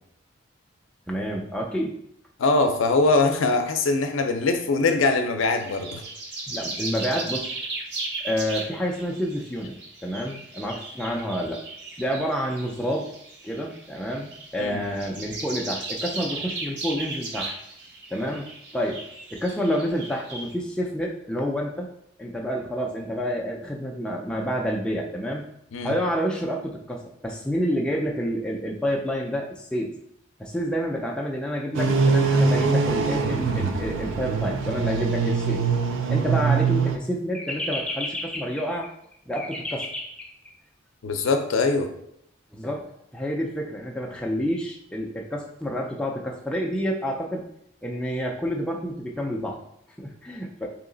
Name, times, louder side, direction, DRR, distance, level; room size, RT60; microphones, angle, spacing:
voice 1, 1.1-1.9 6.5-7.5 8.2-11.6 12.0-13.1 13.4-17.6 18.1-18.5 18.7-19.0 19.3-21.9 22.2-25.4 25.8-29.9 30.4-35.7 36.1-38.9 39.3-40.5 42.5-47.5 47.8-49.6 50.0-50.7, equal, 5° left, -1 dB, 0.3 m, -29 dB
voice 2, 2.4-6.0 14.6-14.8 25.7-25.9 41.0-41.9, left 3 dB, 80° left, 6 dB, 0.5 m, -22 dB
sound 1, 5.4-20.5, right 3 dB, 55° right, 0.8 m, -36 dB
sound 2, 31.7-37.0, right 4 dB, 70° right, 0.4 m, -23 dB
3.1 x 2.8 x 3.8 m, 0.74 s
head